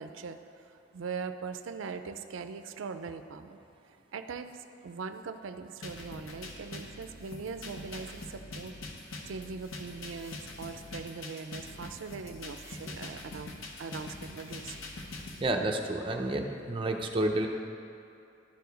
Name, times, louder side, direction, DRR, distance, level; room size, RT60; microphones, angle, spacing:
voice 1, 0.0-3.6 4.1-8.7 9.2-14.8, right 5 dB, 75° right, 9 dB, 0.4 m, -41 dB
sound 1, 5.8-15.4, left 2 dB, 80° left, 0.9 m, -44 dB
voice 2, 15.4-17.5, right 1 dB, 25° right, 3 dB, 0.5 m, -30 dB
11.5 x 4.7 x 5.2 m, 2.6 s
head